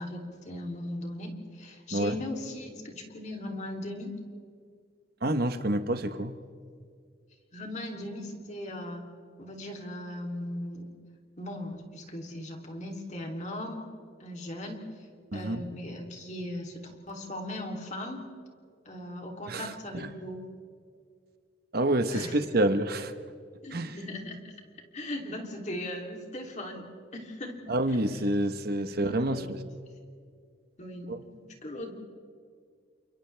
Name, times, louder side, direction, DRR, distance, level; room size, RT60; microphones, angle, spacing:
voice 1, 0.0-4.2 7.5-9.1 9.4-10.9 11.4-13.8 14.2-14.8 15.3-18.2 18.8-20.5 22.1-22.4 23.6-24.4 24.9-26.9 27.1-28.0 29.1-29.5 30.8-31.9, left 1 dB, 40° left, 1 dB, 3.1 m, -38 dB
voice 2, 5.2-6.4 15.3-15.6 19.5-20.1 21.7-23.1 23.7-23.9 27.7-29.4 31.1-31.2, right 1 dB, 55° right, 9 dB, 1.2 m, -28 dB
30.0 x 27.5 x 3.4 m, 2.2 s
head